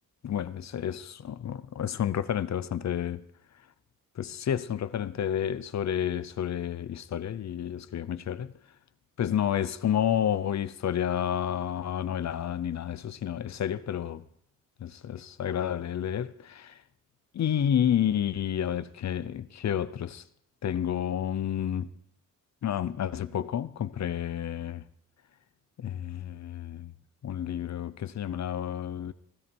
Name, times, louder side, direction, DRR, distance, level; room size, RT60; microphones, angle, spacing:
voice 1, 0.2-3.2 4.2-8.5 9.2-14.2 14.8-16.8 17.3-20.2 20.6-21.9 22.6-24.8 25.8-26.9 27.2-29.1, left 9 dB, 55° left, 0.8 m, -30 dB
16.5 x 15.5 x 4.6 m
wide cardioid pair, 175°, 34 cm